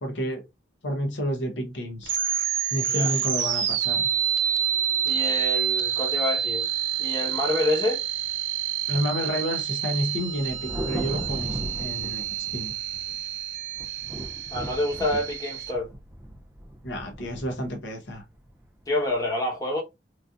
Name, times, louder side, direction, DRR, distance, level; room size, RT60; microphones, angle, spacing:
voice 1, 0.0-0.4 0.8-2.1 2.7-4.1 8.9-12.2 12.5-12.7 16.8-18.2, equal, 85° left, 0.9 m, -30 dB
sound 1, 2.0-15.7, right 9 dB, 90° right, 0.6 m, -28 dB
voice 2, 5.0-6.7 7.0-8.0 14.5-15.9 18.9-19.8, left 1 dB, 20° left, 1.0 m, -27 dB
Thunder, 10.2-13.3 13.7-19.1, right 1 dB, 10° right, 0.4 m, -37 dB
3.1 x 2.6 x 2.4 m
head